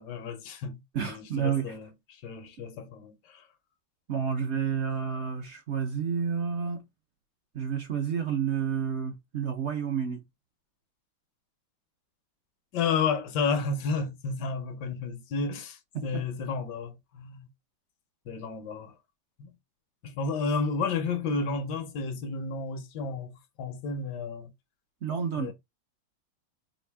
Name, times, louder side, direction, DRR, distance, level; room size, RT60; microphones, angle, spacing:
voice 1, 0.0-0.8 1.1-3.4 12.7-17.5 18.3-18.9 19.4-19.5 20.0-24.5 25.4-25.5, left 4 dB, 70° left, 1.3 m, -32 dB
voice 2, 0.9-1.8 4.1-6.8 7.5-10.2 15.9-16.2 25.0-25.5, right 7 dB, 65° right, 0.7 m, -30 dB
5.1 x 2.5 x 3.3 m
omnidirectional pair, 2.1 m